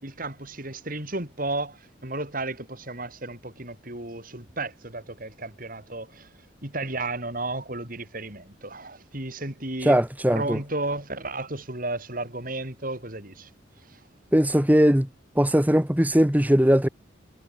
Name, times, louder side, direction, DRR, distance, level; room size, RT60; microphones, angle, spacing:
voice 1, 0.0-6.3 6.6-10.0 10.3-13.5 13.9-14.0, right 2 dB, 45° right, 5.3 m, -33 dB
voice 2, 9.8-10.6 14.3-15.1 15.3-16.9, equal, 10° right, 1.3 m, -20 dB
head